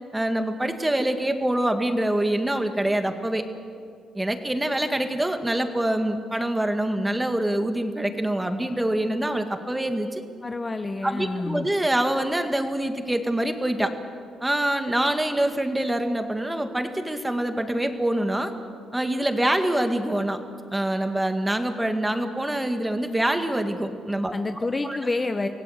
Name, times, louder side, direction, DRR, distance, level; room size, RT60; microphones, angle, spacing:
voice 1, 0.1-3.4 4.1-10.2 11.0-13.9 14.4-18.5 18.9-20.4 20.7-24.3 24.8-25.0, right 1 dB, 10° right, 7 dB, 1.9 m, -25 dB
voice 2, 10.4-11.7 24.3-25.5, left 3 dB, 25° left, 8 dB, 0.9 m, -28 dB
25.0 x 17.0 x 8.1 m, 2.2 s
cardioid pair, 90°, 0 cm